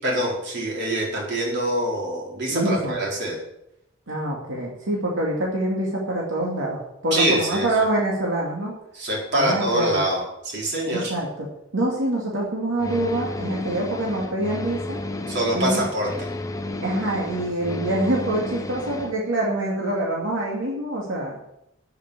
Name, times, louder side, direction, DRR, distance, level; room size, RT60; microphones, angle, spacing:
voice 1, 0.0-3.4 7.1-7.7 8.9-11.1 15.3-16.1, right 1 dB, 60° right, -3 dB, 4.4 m, -24 dB
voice 2, 2.5-3.0 4.1-8.7 9.3-10.0 10.9-11.5 11.7-15.0 15.5-15.8 16.8-21.4, right 1 dB, 90° right, -3 dB, 2.4 m, -25 dB
sound 1, 12.8-19.1, left 2 dB, 15° left, 0.8 m, -32 dB
8.7 x 8.2 x 8.3 m, 0.83 s
head